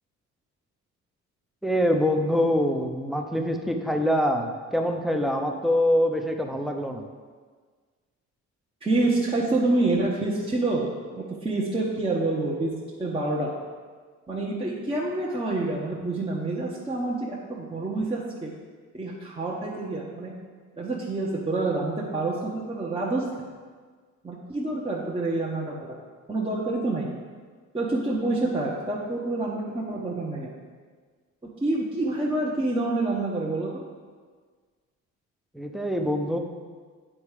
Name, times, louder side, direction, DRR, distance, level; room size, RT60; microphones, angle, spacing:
voice 1, 1.6-7.1 35.5-36.4, equal, ahead, 3 dB, 0.8 m, -24 dB
voice 2, 8.8-10.9 11.1-12.7 13.0-13.5 14.3-18.5 18.9-20.3 20.7-23.2 24.2-26.0 26.3-27.1 27.7-30.5 31.6-33.8, right 2 dB, 20° right, -5 dB, 1.1 m, -27 dB
8.8 x 4.3 x 4.9 m, 1.5 s
cardioid pair, 90°, 30 cm